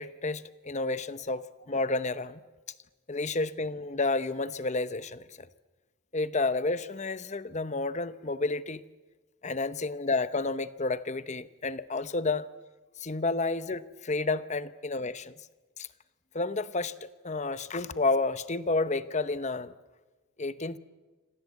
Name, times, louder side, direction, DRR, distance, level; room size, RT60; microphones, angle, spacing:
voice 1, 0.0-2.4 3.1-5.2 6.1-8.8 9.4-12.5 13.0-15.3 15.8-15.9 16.3-16.9 17.2-19.7 20.4-20.8, left 3 dB, 35° left, 14 dB, 0.9 m, -30 dB
27.5 x 26.5 x 8.3 m, 1.2 s
head